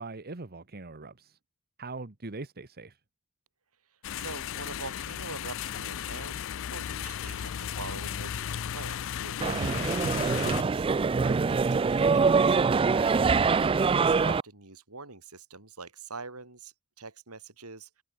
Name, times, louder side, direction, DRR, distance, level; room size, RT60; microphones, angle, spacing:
voice 1, 0.0-1.4 1.8-3.0 12.9-13.2, right 3 dB, 45° right, 1.4 m, -41 dB
sound 1, 4.0-10.6, left 9 dB, 65° left, 0.4 m, -35 dB
voice 2, 4.2-12.6 13.5-18.0, right 3 dB, 85° right, 5.3 m, -44 dB
sound 2, 9.4-14.4, right 5 dB, 25° right, 0.3 m, -24 dB
head